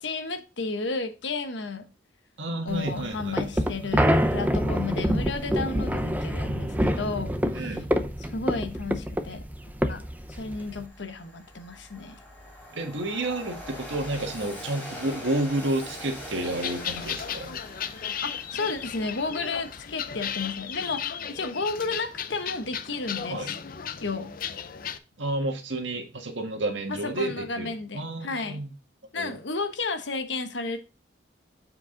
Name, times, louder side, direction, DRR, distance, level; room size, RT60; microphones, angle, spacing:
voice 1, 0.0-1.9 2.7-7.8 8.2-9.4 9.9-12.2 18.2-23.6 24.0-24.3 26.9-28.6 29.1-30.8, left 3 dB, 75° left, 1.0 m, -33 dB
voice 2, 2.4-3.9 7.5-7.9 12.7-17.6 23.3-23.5 25.2-28.7 29.1-29.3, right 2 dB, 85° right, 1.6 m, -31 dB
sound 1, 2.7-10.9, equal, 10° right, 0.6 m, -26 dB
Train, 9.7-9.8 10.2-20.6, equal, 10° left, 3.7 m, -43 dB
sound 2, 16.4-25.0, left 8 dB, 50° left, 0.5 m, -35 dB
7.9 x 4.8 x 3.8 m
head